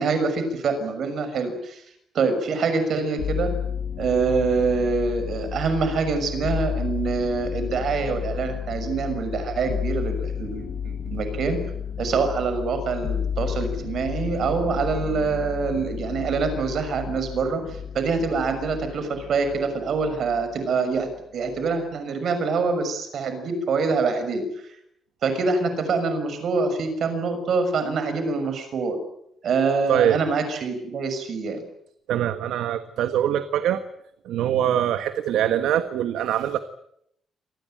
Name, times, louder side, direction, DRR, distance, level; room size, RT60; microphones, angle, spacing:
voice 1, 0.0-1.8 2.1-3.5 4.0-11.6 12.0-21.1 21.3-24.7 25.2-29.0 29.4-31.6, right 4 dB, 50° right, 9 dB, 6.1 m, -25 dB
sound 1, 3.2-20.6 20.9-21.7, left 7 dB, 55° left, 1.9 m, -32 dB
voice 2, 29.9-30.2 32.1-33.8 34.2-36.6, right 10 dB, 85° right, 10 dB, 1.4 m, -23 dB
26.0 x 20.0 x 8.9 m, 0.74 s
cardioid pair, 160°, 0 cm